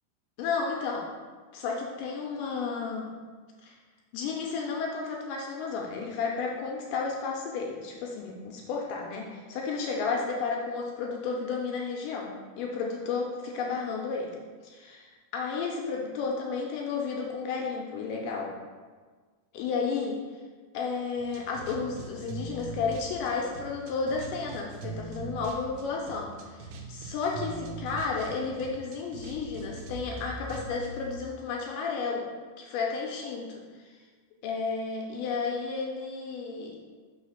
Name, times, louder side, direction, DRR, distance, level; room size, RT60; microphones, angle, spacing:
voice 1, 0.4-1.1 1.5-3.1 3.6-3.8 4.1-12.3 12.6-14.4 14.6-18.5 19.5-20.2 20.7-34.0 34.4-36.7, left 4 dB, 80° left, -1 dB, 2.1 m, -32 dB
sound 1, 21.2-31.1, right 3 dB, 90° right, 2.5 m, -42 dB
5.6 x 3.3 x 5.6 m, 1.5 s
omnidirectional pair, 4.1 m